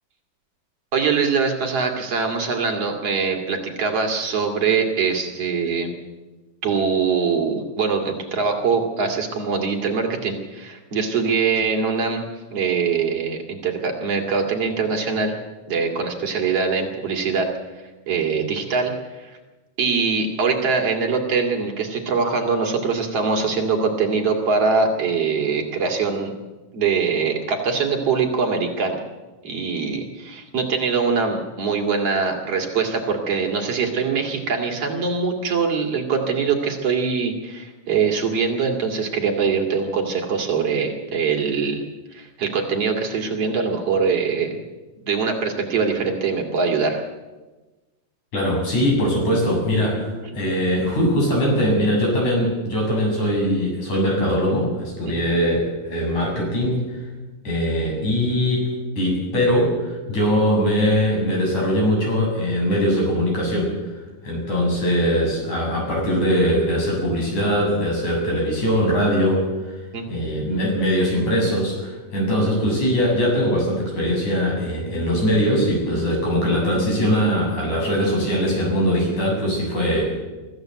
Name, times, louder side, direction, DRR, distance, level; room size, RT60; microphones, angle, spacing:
voice 1, 0.9-5.9 6.6-15.4 15.7-17.5 18.1-18.9 19.2-19.3 19.8-26.3 26.7-29.1 29.4-41.8 42.1-44.6 45.0-47.0 55.1-55.2 69.9-70.1, right 5 dB, 55° right, 2 dB, 3.5 m, -23 dB
voice 2, 48.3-57.0 57.5-58.7 59.0-63.7 64.2-69.8 70.1-80.1, equal, 80° left, -1 dB, 8.8 m, -21 dB
24.0 x 14.5 x 7.9 m, 1.2 s
omnidirectional pair, 3.3 m